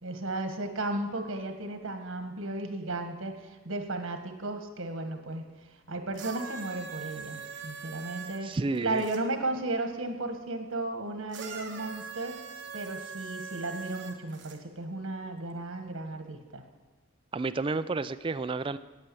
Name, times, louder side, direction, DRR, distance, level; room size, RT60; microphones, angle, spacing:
voice 1, 0.0-5.5 5.9-12.4 12.7-16.6, right 2 dB, 90° right, 6 dB, 1.4 m, -34 dB
sound 1, 6.1-9.2 11.3-14.6 15.5-15.6, right 5 dB, 60° right, 1.3 m, -42 dB
voice 2, 8.4-9.0 17.3-18.8, right 3 dB, 25° right, 12 dB, 0.3 m, -31 dB
8.9 x 8.7 x 7.7 m, 1.2 s
head